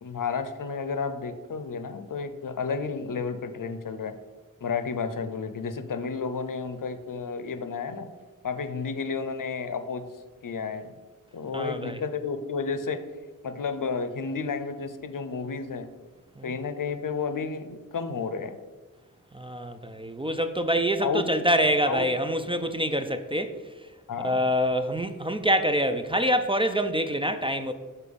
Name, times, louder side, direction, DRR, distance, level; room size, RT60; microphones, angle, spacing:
voice 1, 0.0-4.1 4.6-8.1 8.4-10.1 10.4-10.9 11.3-13.0 13.4-15.9 16.4-18.6 21.0-21.3 21.8-22.0 24.1-24.5, left 5 dB, 70° left, 10 dB, 0.6 m, -31 dB
voice 2, 11.5-12.0 16.4-16.5 19.3-23.5 24.2-27.7, equal, 15° right, 8 dB, 0.5 m, -26 dB
6.8 x 4.4 x 5.2 m, 1.3 s
wide cardioid pair, 70°, 33 cm